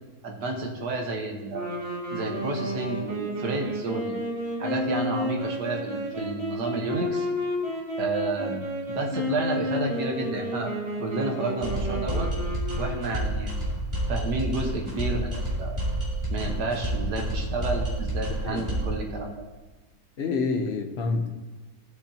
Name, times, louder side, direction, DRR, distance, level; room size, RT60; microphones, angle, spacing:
voice 1, 0.2-1.7 2.1-4.2 4.6-7.3 8.0-10.7 11.0-12.3 12.8-13.6 14.1-15.8 16.3-19.3, right 2 dB, 80° right, 1 dB, 1.9 m, -31 dB
sound 1, 1.5-13.4, equal, 35° right, 2.3 m, -31 dB
sound 2, 11.6-19.0, right 1 dB, 15° right, 2.6 m, -29 dB
voice 2, 20.2-21.3, left 4 dB, 45° left, 4 dB, 1.0 m, -27 dB
16.5 x 6.2 x 2.9 m, 1.2 s
omnidirectional pair, 1.8 m